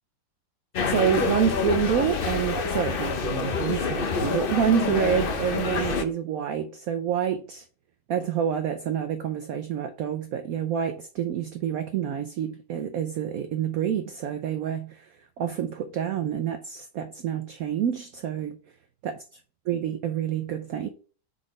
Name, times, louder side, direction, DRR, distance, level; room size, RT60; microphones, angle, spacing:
sound 1, 0.7-6.0, left 5 dB, 70° left, 0.5 m, -27 dB
voice 1, 0.9-7.6 8.1-18.6 19.0-19.4 19.7-20.9, right 8 dB, 70° right, 0.8 m, -28 dB
4.8 x 4.1 x 4.8 m
omnidirectional pair, 2.0 m